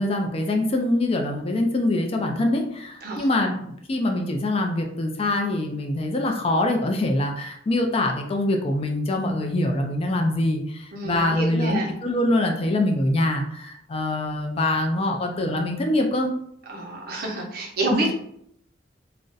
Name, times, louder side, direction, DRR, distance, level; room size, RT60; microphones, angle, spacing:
voice 1, 0.0-16.3, left 1 dB, 30° left, 3 dB, 0.4 m, -24 dB
voice 2, 10.9-11.9 16.7-18.1, right 2 dB, 55° right, -1 dB, 0.8 m, -28 dB
2.5 x 2.1 x 3.8 m, 0.71 s
head